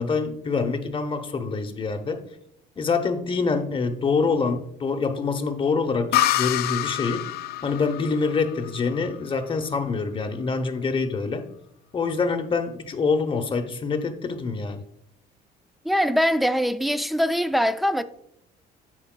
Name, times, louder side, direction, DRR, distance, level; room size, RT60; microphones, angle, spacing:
voice 1, 0.0-2.2 2.8-7.3 7.6-11.5 11.9-14.8, left 4 dB, 30° left, 0.8 m, -25 dB
sound 1, 6.1-9.7, left 13 dB, 65° left, 0.4 m, -27 dB
voice 2, 15.8-18.0, equal, ahead, 0.3 m, -22 dB
13.5 x 4.6 x 2.2 m
cardioid pair, 110°, 17 cm